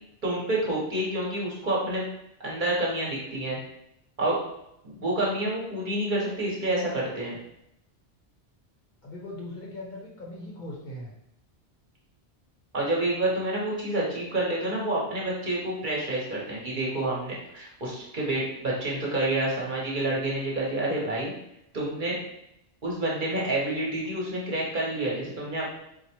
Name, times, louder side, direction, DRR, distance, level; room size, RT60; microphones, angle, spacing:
voice 1, 0.2-2.0 2.4-3.6 4.2-4.4 4.8-7.4 12.7-21.3 21.7-22.2 22.8-25.7, right 1 dB, 50° right, -5 dB, 1.0 m, -28 dB
voice 2, 9.0-11.1, left 1 dB, 50° left, -3 dB, 0.7 m, -39 dB
4.2 x 2.1 x 2.9 m, 0.80 s
omnidirectional pair, 1.1 m